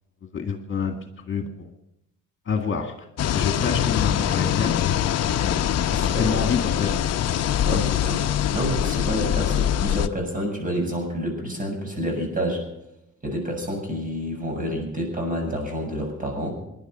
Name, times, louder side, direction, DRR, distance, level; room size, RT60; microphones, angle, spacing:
voice 1, 0.2-1.0 1.3-1.7 2.5-3.1 3.3-4.8 5.3-5.6 5.9-7.1 7.7-7.8, left 6 dB, 40° left, 6 dB, 2.0 m, -27 dB
sound 1, 3.2-10.1, left 10 dB, 55° left, 0.8 m, -23 dB
voice 2, 5.9-6.5 7.6-8.2 8.5-12.7 13.2-16.5, equal, 25° right, 2 dB, 7.4 m, -28 dB
18.5 x 11.0 x 6.1 m, 0.85 s
cardioid pair, 90°, 30 cm